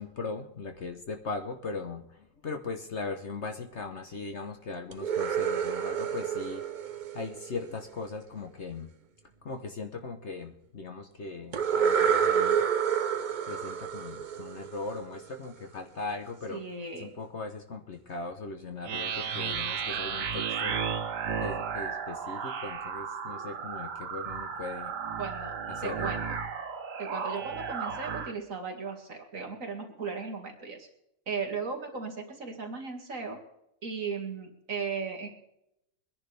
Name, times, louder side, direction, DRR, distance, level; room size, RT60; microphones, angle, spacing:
voice 1, 0.0-6.7 7.1-8.9 9.4-12.6 13.5-16.6 17.0-20.8 21.4-25.2 25.7-26.1, left 3 dB, 50° left, 6 dB, 1.2 m, -39 dB
sound 1, 4.9-7.9 11.5-15.2, right 8 dB, 70° right, 0.4 m, -28 dB
voice 2, 16.5-17.1 25.2-25.5 25.8-26.2 27.0-30.9 31.3-33.4 33.8-35.3, right 5 dB, 50° right, 2 dB, 2.4 m, -36 dB
sound 2, 18.8-28.3, right 6 dB, 90° right, 1.8 m, -34 dB
24.0 x 10.5 x 3.4 m, 0.81 s
omnidirectional pair, 1.8 m